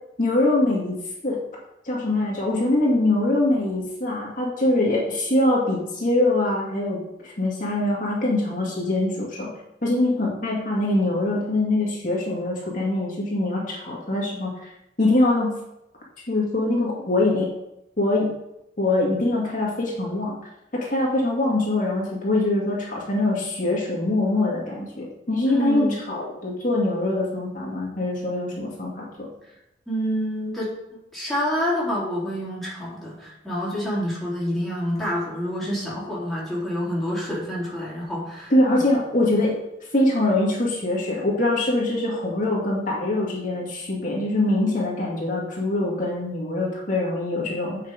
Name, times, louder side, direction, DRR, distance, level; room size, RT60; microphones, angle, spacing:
voice 1, 0.2-1.0 1.2-1.4 1.8-9.5 9.8-14.7 15.0-15.5 16.3-17.5 18.0-18.3 18.8-20.4 20.7-29.3 38.5-39.6 39.9-47.8, left 2 dB, 45° left, -4 dB, 2.1 m, -23 dB
voice 2, 25.5-26.0 29.9-38.8, equal, ahead, -8 dB, 2.8 m, -28 dB
8.1 x 5.6 x 5.1 m, 0.83 s
head